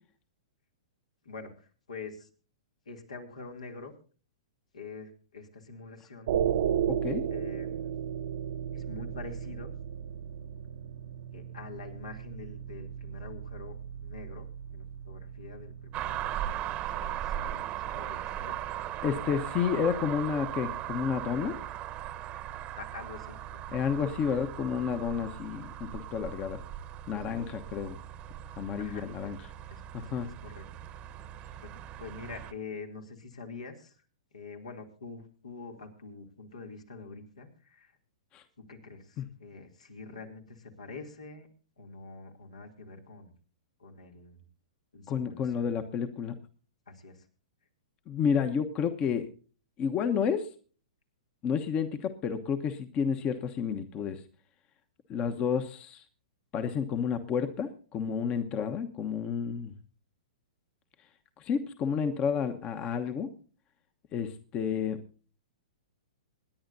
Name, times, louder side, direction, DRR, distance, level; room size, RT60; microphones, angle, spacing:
voice 1, 1.2-2.3 2.8-3.9 4.7-6.4 7.3-7.9 8.7-9.7 11.3-16.7 16.9-18.6 22.8-24.4 28.8-29.3 29.7-30.6 31.6-31.7 32.0-34.0 34.3-38.0 38.7-41.5 41.8-43.3 43.8-44.4 44.9-45.8 46.9-47.3, left 4 dB, 80° left, 3 dB, 2.9 m, -46 dB
sound 1, 6.3-16.5, right 9 dB, 60° right, 0.9 m, -35 dB
voice 2, 6.9-7.2 19.0-21.6 23.7-26.6 27.1-28.0 28.6-29.4 29.9-30.3 38.3-38.4 39.2-39.3 45.1-46.4 48.1-49.3 49.8-50.5 51.4-54.2 55.1-56.0 56.5-59.7 61.4-63.3 64.1-65.0, left 7 dB, 30° left, 8 dB, 1.1 m, -30 dB
sound 2, 15.9-32.5, right 12 dB, 30° right, 1.0 m, -38 dB
26.5 x 10.5 x 2.7 m, 0.39 s
hypercardioid pair, 115°, 4 cm